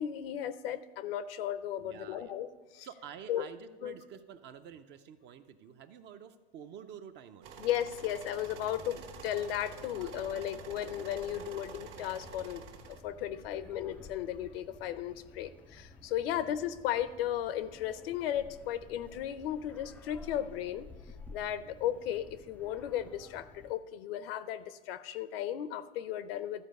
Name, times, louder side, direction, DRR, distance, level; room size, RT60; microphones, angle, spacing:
voice 1, 0.0-2.9 3.3-3.5 3.8-3.9 7.6-20.9 21.3-26.7, left 11 dB, 70° left, 14 dB, 0.7 m, -35 dB
voice 2, 1.8-2.4 2.8-7.6 9.9-10.5 11.4-11.7 13.3-13.7 16.2-16.5 21.4-21.8, right 8 dB, 35° right, 10 dB, 0.6 m, -50 dB
sound 1, 7.4-13.0, right 5 dB, 55° right, 1.5 m, -48 dB
sound 2, 8.5-23.7, left 3 dB, 5° left, 0.3 m, -54 dB
13.5 x 4.6 x 5.3 m, 1.2 s
hypercardioid pair, 110°, 31 cm